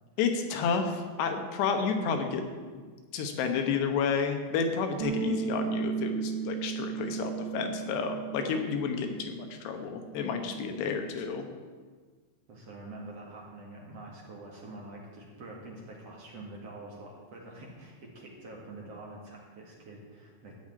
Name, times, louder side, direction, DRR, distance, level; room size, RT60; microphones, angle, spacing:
voice 1, 0.2-2.4 2.7-2.8 3.1-11.5, left 5 dB, 75° left, 6 dB, 3.2 m, -30 dB
sound 1, 5.0-9.6 9.8-11.3, right 6 dB, 65° right, 2.2 m, -35 dB
voice 2, 12.5-20.6, right 2 dB, 45° right, -2 dB, 2.2 m, -46 dB
14.0 x 5.8 x 9.6 m, 1.5 s
omnidirectional pair, 5.2 m